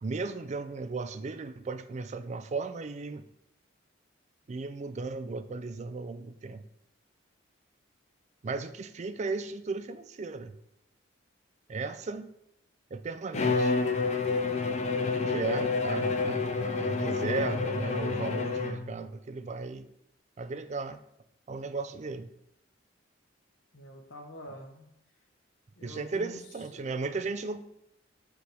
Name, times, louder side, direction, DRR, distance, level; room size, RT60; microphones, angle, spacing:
voice 1, 0.0-3.3 4.5-6.6 8.4-10.6 11.7-12.3 12.9-13.8 15.3-19.9 20.4-21.0 21.5-22.3 25.8-27.6, right 3 dB, 35° right, 11 dB, 0.4 m, -35 dB
Bowed string instrument, 13.3-19.0, left 4 dB, 35° left, 0.5 m, -29 dB
voice 2, 23.7-24.9 25.8-26.4 26.7-26.9, equal, 80° left, 3 dB, 1.1 m, -46 dB
6.1 x 5.0 x 3.4 m, 0.80 s
head